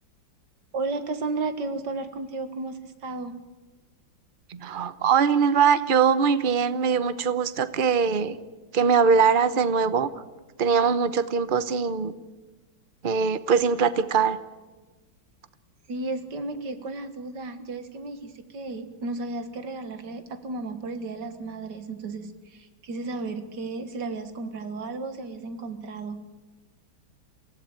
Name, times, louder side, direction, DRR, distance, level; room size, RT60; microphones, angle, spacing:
voice 1, 0.7-3.3 15.9-26.2, right 3 dB, 60° right, 9 dB, 2.2 m, -33 dB
voice 2, 4.5-8.4 8.7-10.1 10.6-12.1 13.0-14.4, right 6 dB, 45° right, 14 dB, 0.7 m, -22 dB
24.5 x 16.0 x 8.9 m, 1.2 s
omnidirectional pair, 2.1 m